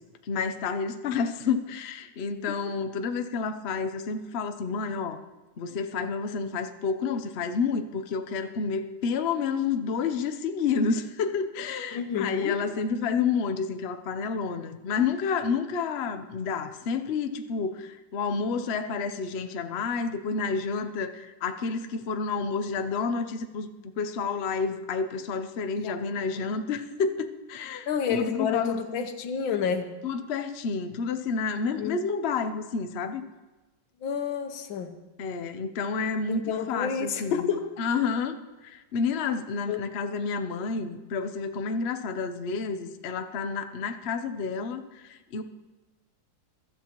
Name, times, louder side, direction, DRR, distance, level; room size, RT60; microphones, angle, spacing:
voice 1, 0.3-5.2 5.6-23.7 24.0-29.0 30.0-33.2 35.2-36.4 36.7-37.4 37.8-38.4 38.6-44.8 45.1-45.4, left 5 dB, 60° left, 8 dB, 0.7 m, -29 dB
voice 2, 11.9-12.6 25.8-25.9 27.9-30.0 31.8-32.0 34.0-34.9 36.3-37.7 39.7-39.8, left 7 dB, 85° left, 8 dB, 1.7 m, -29 dB
23.0 x 13.0 x 3.0 m, 1.1 s
omnidirectional pair, 2.1 m